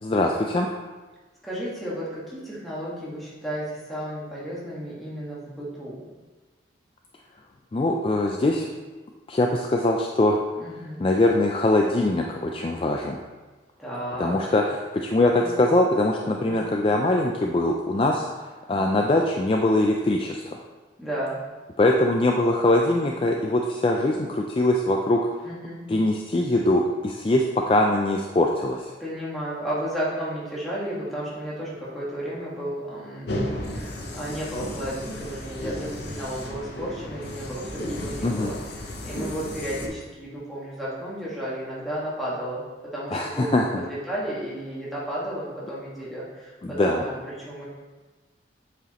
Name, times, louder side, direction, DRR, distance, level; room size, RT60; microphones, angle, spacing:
voice 1, 0.0-0.7 7.7-8.7 9.3-10.4 11.0-13.2 14.2-20.6 21.8-25.4 25.9-28.9 38.2-38.5 43.1-43.9 46.6-47.0, left 1 dB, 30° left, 1 dB, 0.3 m, -22 dB
voice 2, 1.4-6.0 10.6-11.0 13.8-14.5 15.3-15.5 16.4-16.7 21.0-21.4 25.4-25.8 29.0-38.6 39.0-47.7, right 1 dB, ahead, -8 dB, 1.6 m, -33 dB
sound 1, 33.3-39.9, left 1 dB, 60° left, 0.8 m, -34 dB
8.0 x 4.9 x 3.0 m, 1.3 s
head